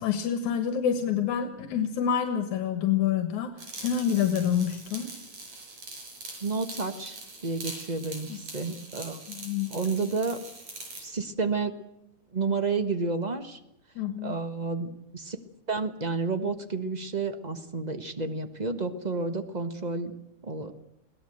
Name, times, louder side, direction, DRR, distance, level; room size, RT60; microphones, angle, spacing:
voice 1, 0.0-5.1 8.3-8.4 9.3-9.7 14.0-14.4, left 8 dB, 85° left, 9 dB, 2.9 m, -27 dB
sound 1, 3.6-11.1, right 3 dB, 75° right, 6.6 m, -43 dB
voice 2, 6.4-9.2 9.7-10.4 11.0-11.8 12.3-13.6 14.2-15.4 15.7-20.1 20.4-20.7, right 4 dB, 35° right, 9 dB, 0.7 m, -30 dB
22.5 x 17.5 x 7.9 m, 0.86 s
omnidirectional pair, 3.3 m